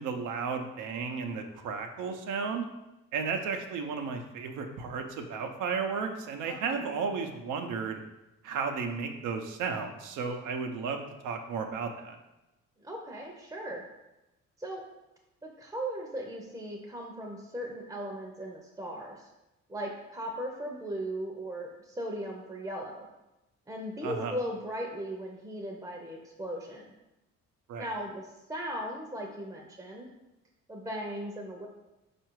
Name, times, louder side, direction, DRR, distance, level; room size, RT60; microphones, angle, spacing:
voice 1, 0.0-2.6 3.1-8.0 8.4-12.2 24.0-24.3 27.7-27.9, right 5 dB, 85° right, 5 dB, 0.6 m, -34 dB
voice 2, 6.5-6.8 12.8-13.8 14.6-14.8 15.4-19.3 19.7-23.1 23.7-26.9 27.8-30.1 30.7-31.7, equal, 10° right, 0 dB, 0.6 m, -38 dB
4.6 x 2.5 x 4.5 m, 0.96 s
cardioid pair, 90°, 30 cm